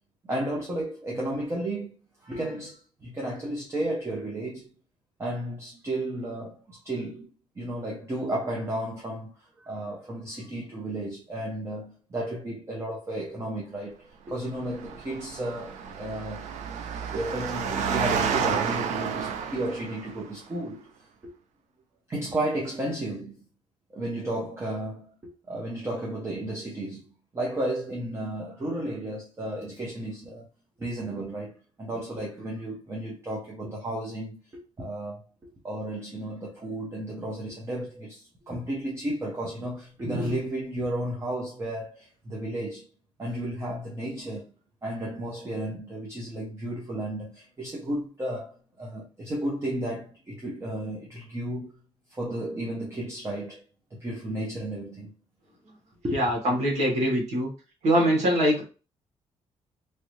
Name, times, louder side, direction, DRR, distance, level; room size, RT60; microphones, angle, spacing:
voice 1, 0.3-1.9 2.2-4.7 5.2-16.5 17.1-20.9 21.2-21.3 22.1-23.4 23.9-27.1 27.3-30.5 30.8-35.2 35.6-42.9 43.2-44.5 44.8-51.7 52.1-53.6 53.9-55.1 56.0-56.2, right 1 dB, 20° right, 0.8 m, -33 dB
Engine, 14.6-20.2, right 6 dB, 90° right, 0.5 m, -30 dB
voice 2, 56.1-57.5 57.8-58.6, equal, 70° right, 1.7 m, -23 dB
3.2 x 2.6 x 3.1 m
cardioid pair, 140°, 12 cm